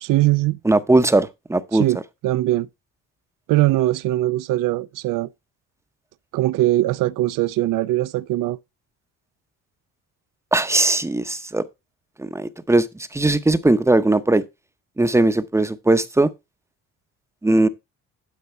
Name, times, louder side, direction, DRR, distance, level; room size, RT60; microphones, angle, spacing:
voice 1, 0.0-0.6 1.7-2.0 2.2-2.7 3.5-5.3 6.3-8.6, right 16 dB, 80° right, 0.5 m, -21 dB
voice 2, 0.6-1.8 10.5-11.6 12.2-12.9 13.1-14.4 15.0-16.3 17.4-17.7, right 2 dB, 10° right, 0.7 m, -19 dB
12.0 x 5.3 x 4.3 m
cardioid pair, 140°, 32 cm